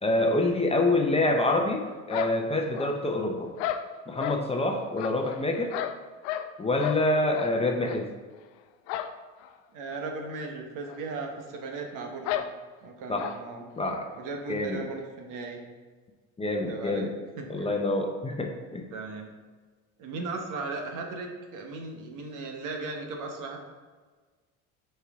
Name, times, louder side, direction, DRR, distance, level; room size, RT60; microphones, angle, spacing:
voice 1, 0.0-3.5 4.1-5.8 6.6-8.1 13.1-13.3 13.8-14.0 14.5-14.8 16.4-17.1 17.5-18.9, left 2 dB, 15° left, 2 dB, 0.8 m, -26 dB
sound 1, 2.1-3.1 3.6-4.4 5.0-6.5 6.8-7.0 7.3-7.5 7.8-8.0 8.9-9.2 9.4-9.5 9.9-10.0 10.8-11.0 11.2-11.3 12.2-12.5 13.2-13.4, left 11 dB, 75° left, 0.6 m, -33 dB
voice 2, 9.7-12.5 12.8-13.7 14.2-15.6 16.7-17.1 17.4-17.7 18.9-19.3 20.0-23.6, right 3 dB, 60° right, 2 dB, 1.3 m, -37 dB
6.7 x 4.5 x 3.6 m, 1.4 s
supercardioid pair, 85°, 36 cm